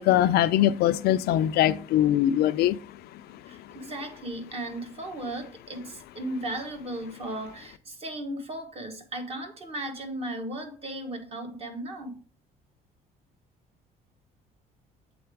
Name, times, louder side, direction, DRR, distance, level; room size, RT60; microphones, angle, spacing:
voice 1, 0.0-2.8, left 12 dB, 70° left, 0.4 m, -22 dB
voice 2, 3.5-12.2, right 1 dB, 35° right, 1.3 m, -36 dB
7.7 x 3.8 x 3.5 m
cardioid pair, 110°, 17 cm